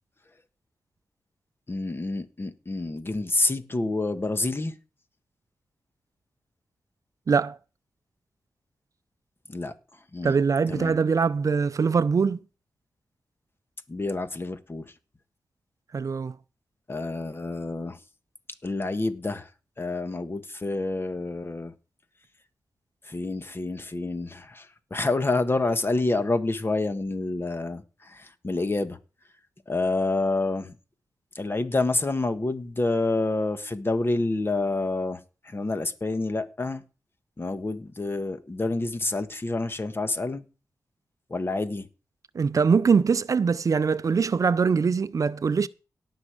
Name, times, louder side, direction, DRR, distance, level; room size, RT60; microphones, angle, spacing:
voice 1, 1.7-4.7 9.5-9.7 10.1-10.4 10.7-11.0 13.9-14.8 16.9-18.0 18.6-19.5 19.8-21.7 23.0-29.0 29.7-30.8 31.3-36.8 37.4-40.4 41.3-41.9, left 2 dB, 35° left, 1.5 m, -28 dB
voice 2, 7.3-7.6 10.2-12.4 15.9-16.3 42.3-45.7, right 5 dB, 55° right, 0.5 m, -22 dB
17.5 x 6.4 x 4.9 m
cardioid pair, 50°, 7 cm